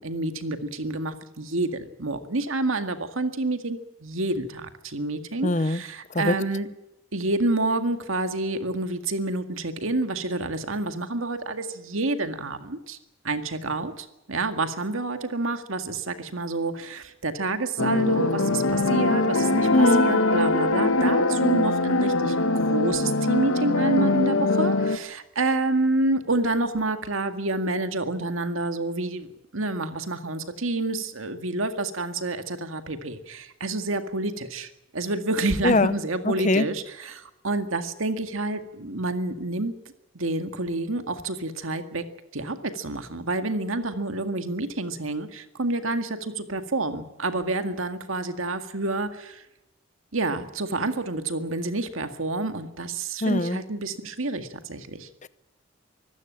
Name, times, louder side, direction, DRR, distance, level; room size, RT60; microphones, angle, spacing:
voice 1, 0.0-6.7 7.1-13.0 13.2-39.8 40.1-42.1 42.3-49.4 50.1-55.1, right 2 dB, 75° right, 8 dB, 2.0 m, -28 dB
voice 2, 5.4-5.8 6.1-6.4 19.7-20.1 35.6-35.9 36.2-36.7 53.2-53.6 55.2-55.3, left 2 dB, 35° left, 16 dB, 0.7 m, -21 dB
sound 1, 17.8-25.0, left 2 dB, 75° left, 1.4 m, -22 dB
24.5 x 15.0 x 8.8 m, 0.94 s
head